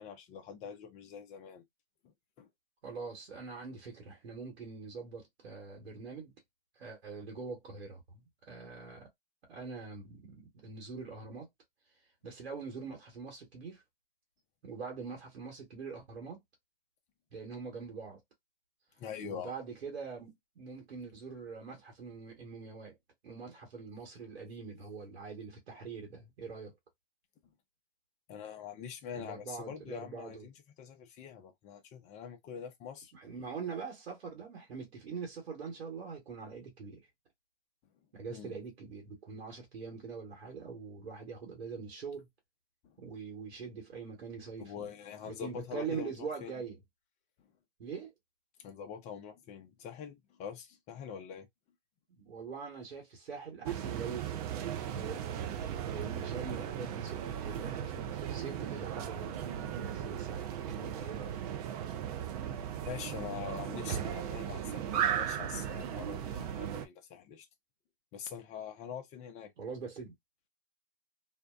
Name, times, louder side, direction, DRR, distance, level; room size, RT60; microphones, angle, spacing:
voice 1, 0.0-1.6 2.4-2.5 19.0-19.5 28.3-33.1 38.3-38.6 42.8-43.0 44.6-46.5 47.4-47.5 48.6-51.5 61.9-62.1 62.8-67.5 68.1-69.5, left 7 dB, 20° left, 0.6 m, -44 dB
voice 2, 2.8-6.3 6.8-9.1 9.5-11.5 12.2-13.8 14.6-16.4 17.3-18.2 19.2-23.0 23.2-26.7 29.1-30.5 33.1-37.1 38.1-42.3 43.0-44.8 45.2-46.8 47.8-48.1 52.1-61.3 69.6-70.1, right 5 dB, 80° right, 1.2 m, -43 dB
sound 1, 53.6-66.8, right 9 dB, 40° right, 0.5 m, -37 dB
2.6 x 2.2 x 2.3 m
hypercardioid pair, 130°, 31 cm